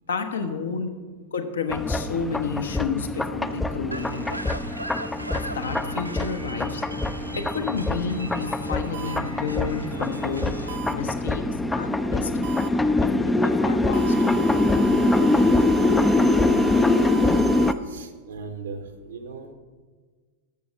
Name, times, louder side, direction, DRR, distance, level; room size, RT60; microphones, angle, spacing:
voice 1, 0.1-0.9 1.3-4.4 5.3-6.8 7.4-10.5 10.9-11.4 11.7-12.4 13.0-13.1 13.4-14.2 15.2-15.6, left 5 dB, 65° left, 7 dB, 1.1 m, -30 dB
sound 1, 1.7-17.7, left 2 dB, 10° left, 0.4 m, -23 dB
sound 2, 3.9-10.8, right 1 dB, 85° right, 0.4 m, -38 dB
sound 3, 8.9-9.2 10.7-10.9 12.4-12.7 13.9-17.7, right 13 dB, 50° right, 0.7 m, -36 dB
voice 2, 17.9-19.5, right 5 dB, 70° right, 6 dB, 1.0 m, -38 dB
12.0 x 7.1 x 6.3 m, 1.5 s
figure-of-eight pair, 90°, 0 cm